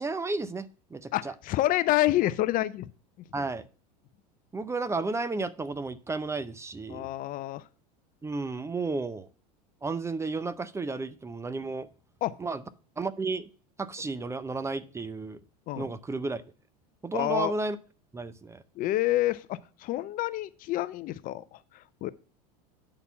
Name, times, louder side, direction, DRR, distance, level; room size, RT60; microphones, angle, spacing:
voice 1, 0.0-1.3 3.3-3.6 4.5-7.1 8.2-9.3 9.8-11.9 12.4-12.6 13.0-13.5 13.8-15.4 15.8-16.4 17.0-17.8 18.1-18.6, right 3 dB, 15° right, 0.5 m, -32 dB
voice 2, 1.1-2.9 6.9-7.6 12.2-12.3 15.7-15.9 17.1-17.5 18.8-22.1, left 15 dB, 40° left, 0.5 m, -28 dB
8.6 x 4.1 x 5.5 m
hypercardioid pair, 100°, 21 cm